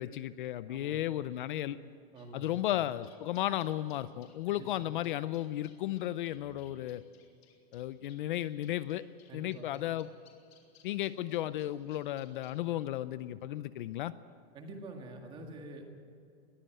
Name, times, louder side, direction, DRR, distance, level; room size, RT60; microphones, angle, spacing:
voice 1, 0.0-1.8 2.3-7.0 7.7-9.0 9.3-10.1 10.8-14.1, left 13 dB, 55° left, 15 dB, 0.6 m, -34 dB
voice 2, 0.7-1.0 2.1-2.7 4.5-4.7 9.3-9.7 14.5-15.8, right 2 dB, 15° right, 3 dB, 1.9 m, -46 dB
sound 1, 2.2-12.5, left 9 dB, 85° left, 3.9 m, -63 dB
21.5 x 15.0 x 9.0 m, 2.4 s
supercardioid pair, 180°, 31 cm